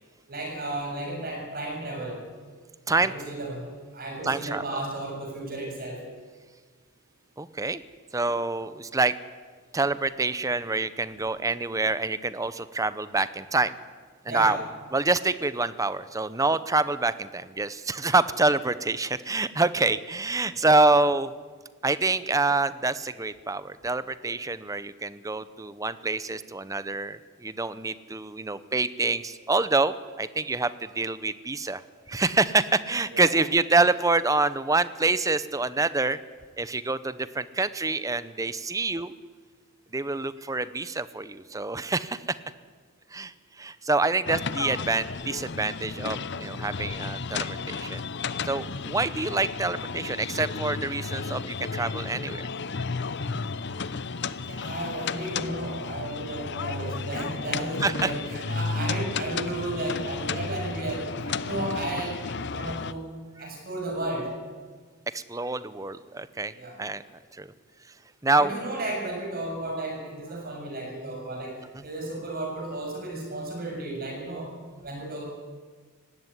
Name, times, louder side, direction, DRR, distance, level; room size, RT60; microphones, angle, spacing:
voice 1, 0.3-2.2 3.0-6.0 14.3-14.6 20.6-20.7 33.1-33.4 54.5-62.2 62.5-63.1 63.4-64.3 66.5-66.8 68.3-71.6 71.8-74.5 74.8-75.2, right 1 dB, 45° right, 1 dB, 6.9 m, -33 dB
voice 2, 4.2-4.8 7.4-7.8 8.1-9.1 9.7-13.7 14.2-14.6 14.9-21.3 21.8-31.8 32.1-36.2 36.6-39.1 39.9-42.4 43.1-48.1 48.4-52.4 54.5-54.7 57.8-58.1 65.1-66.5 66.8-67.0 67.3-67.5 68.2-68.5 71.7-71.8, right 3 dB, 15° right, 15 dB, 0.7 m, -26 dB
sound 1, 44.3-62.9, left 4 dB, 55° left, 0.7 m, -33 dB
19.0 x 16.5 x 9.8 m, 1.5 s
head